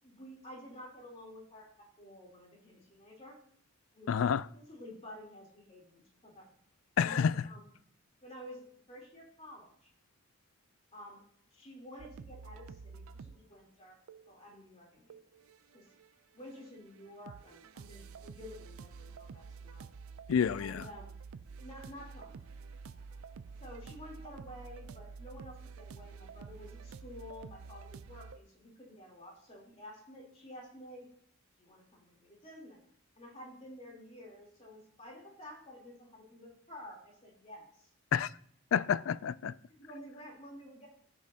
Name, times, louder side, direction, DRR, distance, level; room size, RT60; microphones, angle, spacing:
voice 1, 0.0-1.7 2.0-3.4 3.9-4.1 4.5-6.5 7.0-7.7 8.2-9.9 10.9-11.2 11.5-14.0 14.3-15.2 15.7-15.9 16.3-19.9 20.5-21.1 21.6-22.4 23.6-31.1 31.6-32.8 33.1-37.9 39.7-40.9, left 1 dB, 30° left, 3.3 m, -51 dB
voice 2, 4.1-4.5 7.0-7.4 20.3-20.8 38.1-38.3 38.7-39.5, left 7 dB, 70° left, 0.3 m, -29 dB
sound 1, 12.0-13.4 14.1-14.4 15.1-16.1 16.3-28.4, right 5 dB, 80° right, 0.4 m, -49 dB
15.0 x 6.9 x 2.8 m
head